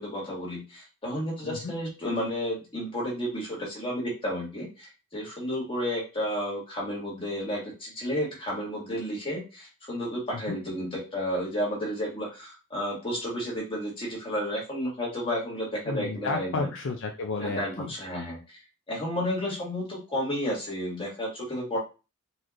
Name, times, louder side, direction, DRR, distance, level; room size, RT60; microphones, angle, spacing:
voice 1, 0.0-16.7 17.4-18.6 18.9-21.8, equal, 25° left, -4 dB, 1.8 m, -32 dB
voice 2, 15.9-17.9, left 3 dB, 60° left, 3 dB, 0.4 m, -32 dB
4.1 x 3.1 x 2.5 m, 0.31 s
head